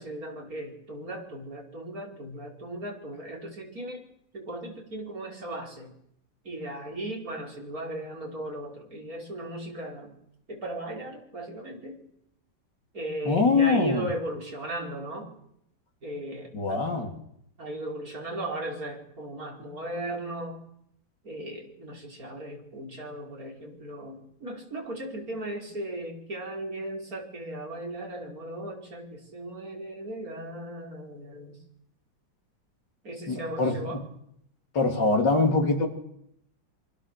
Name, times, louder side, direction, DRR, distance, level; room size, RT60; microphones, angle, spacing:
voice 1, 0.0-4.0 4.3-5.9 6.5-10.1 10.5-12.0 12.9-15.3 16.0-16.9 17.6-20.6 21.2-31.6 33.0-34.0, right 1 dB, 45° right, 0 dB, 5.3 m, -37 dB
voice 2, 13.3-14.1 16.5-17.1 33.3-34.0 34.7-35.9, left 3 dB, 65° left, 3 dB, 3.7 m, -23 dB
27.5 x 25.5 x 6.8 m, 0.76 s
omnidirectional pair, 2.1 m